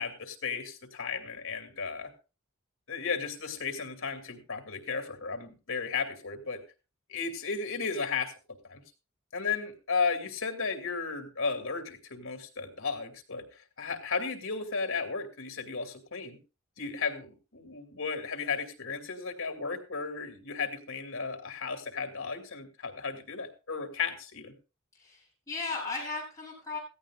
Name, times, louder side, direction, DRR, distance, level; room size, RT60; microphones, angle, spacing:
voice 1, 0.0-2.1 2.9-6.6 7.1-8.3 8.7-8.8 9.3-16.4 16.8-24.5, left 5 dB, 70° left, 6 dB, 2.4 m, -34 dB
voice 2, 24.9-26.8, left 3 dB, 15° left, -4 dB, 7.9 m, -36 dB
16.5 x 15.5 x 2.4 m, 0.33 s
head